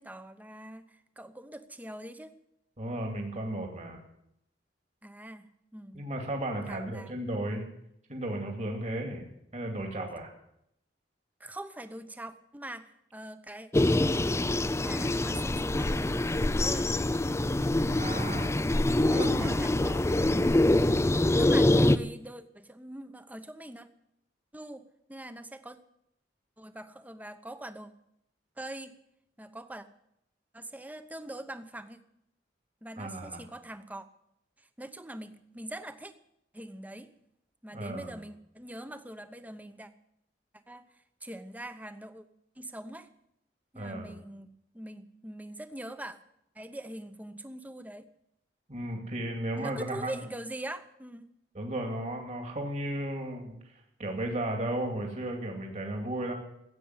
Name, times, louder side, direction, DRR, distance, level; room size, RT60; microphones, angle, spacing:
voice 1, 0.0-2.3 5.0-6.0 6.7-7.1 11.4-13.7 14.5-15.9 16.5-16.9 19.1-20.4 20.7-21.0 21.4-23.9 24.5-24.8 25.1-25.8 26.6-27.9 28.6-28.9 29.4-29.9 30.5-32.0 32.8-34.1 34.6-36.1 36.5-37.1 37.6-39.9 40.7-40.8 41.2-42.2 42.6-43.1 43.7-46.2 46.5-48.1 49.6-51.3, right 1 dB, 10° right, 10 dB, 0.9 m, -43 dB
voice 2, 2.8-4.0 5.9-7.6 8.1-9.3 9.5-10.3 17.9-18.6 19.1-19.5 33.0-33.4 37.7-38.2 43.8-44.2 48.7-50.1 51.5-53.7 54.0-56.3, right 1 dB, 40° right, 2 dB, 2.5 m, -34 dB
sound 1, 13.7-22.0, left 1 dB, 15° left, 0.5 m, -25 dB
15.5 x 8.5 x 9.6 m, 0.77 s
head